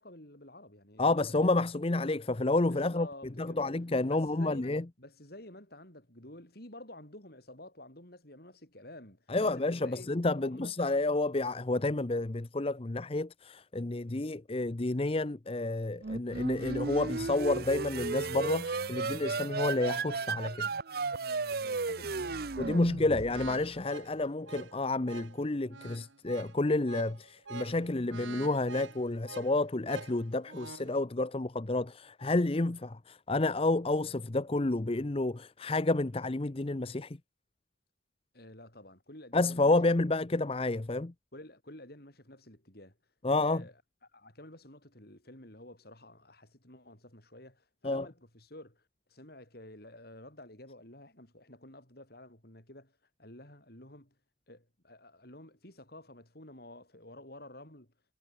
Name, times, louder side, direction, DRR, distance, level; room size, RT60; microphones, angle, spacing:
voice 1, 0.0-1.2 2.7-3.8 4.1-10.1 10.4-10.8 21.6-23.3 38.3-40.1 41.3-43.0 43.4-54.2 54.5-57.9, left 1 dB, 55° left, 5.9 m, -51 dB
voice 2, 1.0-3.1 3.4-4.8 9.3-20.7 22.6-37.2 39.3-41.1 43.2-43.6 47.8-48.0, left 2 dB, 30° left, 0.7 m, -30 dB
sound 1, 16.0-23.7, right 4 dB, 55° right, 0.7 m, -35 dB
sound 2, 23.3-30.9, right 4 dB, 85° right, 1.3 m, -47 dB
head